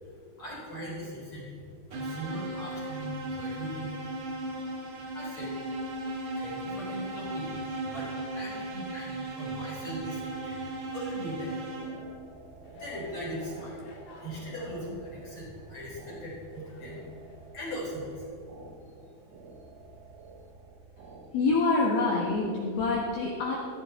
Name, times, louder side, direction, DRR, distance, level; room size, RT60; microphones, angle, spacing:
voice 1, 0.0-4.0 5.1-5.6 6.3-7.5 7.8-11.6 12.7-13.8 14.2-17.0 17.5-18.3 18.8-19.0, equal, 30° left, -7 dB, 3.3 m, -40 dB
sound 1, 1.9-12.3, right 2 dB, 70° right, 1.8 m, -36 dB
sound 2, 11.4-21.2, right 4 dB, 85° right, 4.1 m, -51 dB
sound 3, 12.6-18.1, left 2 dB, 55° left, 2.6 m, -51 dB
voice 2, 21.3-23.6, left 3 dB, 75° left, -2 dB, 2.2 m, -26 dB
15.5 x 10.0 x 3.9 m, 2.6 s
omnidirectional pair, 5.9 m